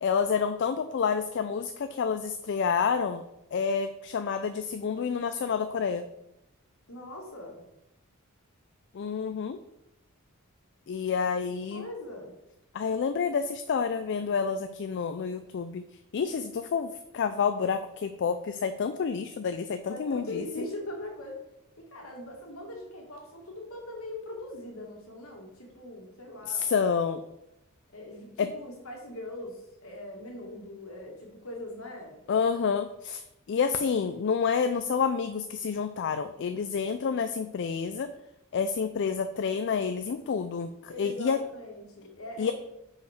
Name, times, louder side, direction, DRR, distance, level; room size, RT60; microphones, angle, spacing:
voice 1, 0.0-3.2 3.5-6.0 8.9-9.6 10.9-11.9 12.7-15.8 16.1-20.4 26.5-27.2 28.4-28.5 32.3-33.2 33.5-38.1 38.5-41.4 42.4-42.5, left 6 dB, 55° left, 9 dB, 0.4 m, -29 dB
voice 2, 6.9-7.6 11.4-12.3 19.9-21.4 21.8-26.7 27.9-32.2 40.9-42.5, left 1 dB, 70° left, 0 dB, 1.8 m, -41 dB
5.3 x 5.0 x 5.0 m, 0.86 s
head